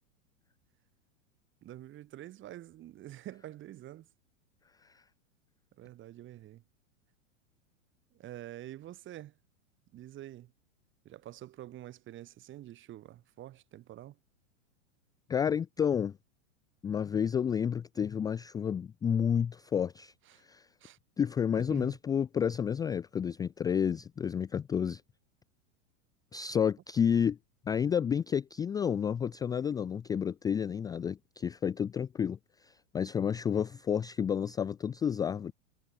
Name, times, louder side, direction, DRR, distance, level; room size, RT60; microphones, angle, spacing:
voice 1, 1.6-4.1 5.8-6.6 8.1-9.3 9.9-10.5 11.1-14.2 20.3-20.4 20.8-21.0 21.5-22.0, right 13 dB, 30° right, 2.0 m, -47 dB
voice 2, 15.3-16.2 16.8-20.7 21.2-25.0 26.3-27.4 27.7-35.5, left 7 dB, 10° left, 0.4 m, -30 dB
hypercardioid pair, 115°, 38 cm